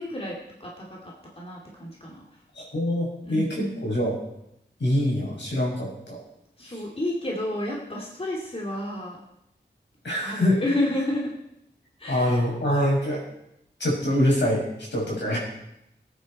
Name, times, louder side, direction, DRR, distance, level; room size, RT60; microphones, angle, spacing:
voice 1, 0.0-2.2 3.2-3.8 6.6-9.2 10.2-11.3 12.0-12.4, left 1 dB, 30° left, -3 dB, 2.8 m, -31 dB
voice 2, 2.5-4.2 4.8-6.2 10.0-10.6 12.1-13.2 13.8-15.4, left 1 dB, 75° left, -4 dB, 5.8 m, -24 dB
19.0 x 9.4 x 4.3 m, 0.81 s
wide cardioid pair, 70°, 18 cm